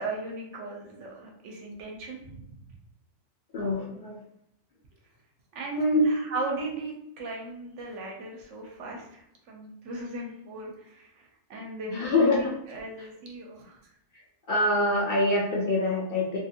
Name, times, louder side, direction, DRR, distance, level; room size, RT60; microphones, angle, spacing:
voice 1, 0.0-2.7 5.5-13.8, right 2 dB, 75° right, 0 dB, 1.0 m, -37 dB
voice 2, 3.5-4.2 5.8-6.1 11.9-12.4 14.5-16.4, left 2 dB, 55° left, -4 dB, 0.6 m, -24 dB
2.6 x 2.5 x 2.7 m, 0.74 s
omnidirectional pair, 1.3 m